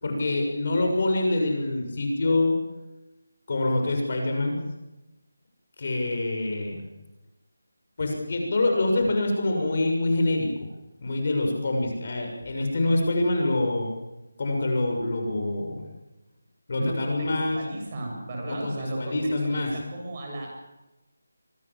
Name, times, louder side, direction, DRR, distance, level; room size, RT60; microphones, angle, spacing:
voice 1, 0.0-2.6 3.5-4.6 5.8-6.8 8.0-10.5 11.0-13.9 14.4-15.8 16.7-17.6 18.4-19.7, left 2 dB, 45° left, 2 dB, 6.8 m, -25 dB
voice 2, 16.8-17.3 17.5-20.5, right 1 dB, 30° right, 0 dB, 7.1 m, -34 dB
25.0 x 19.0 x 7.6 m, 0.98 s
figure-of-eight pair, 170°, 0 cm